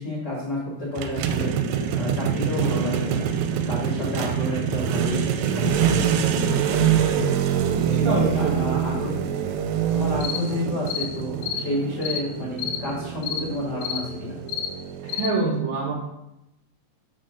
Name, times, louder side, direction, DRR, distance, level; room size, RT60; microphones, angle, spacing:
voice 1, 0.0-1.5 1.9-7.3 7.8-9.2 9.9-14.4, left 1 dB, 55° left, -6 dB, 1.1 m, -30 dB
sound 1, 1.0-15.3, right 8 dB, 90° right, 2.9 m, -25 dB
voice 2, 7.9-8.7 15.0-15.9, right 3 dB, 70° right, -6 dB, 1.8 m, -25 dB
sound 2, 10.2-10.4 10.9-11.1 11.4-11.6 12.0-12.2 12.6-12.8 13.2-13.4 13.8-14.0 14.5-14.7 15.1-15.3, left 9 dB, 85° left, 2.5 m, -29 dB
6.1 x 4.3 x 6.3 m, 0.86 s
omnidirectional pair, 5.1 m